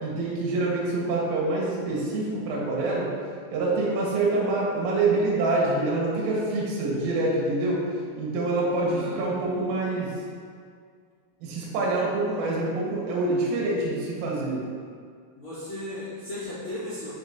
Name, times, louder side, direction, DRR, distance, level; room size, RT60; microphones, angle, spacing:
voice 1, 0.0-3.1 3.5-7.8 8.2-10.1 11.4-14.6, right 2 dB, 80° right, -4 dB, 4.0 m, -26 dB
voice 2, 8.9-10.0 15.4-17.1, left 1 dB, 55° left, -13 dB, 2.1 m, -37 dB
13.0 x 5.0 x 2.8 m, 2.1 s
omnidirectional pair, 5.9 m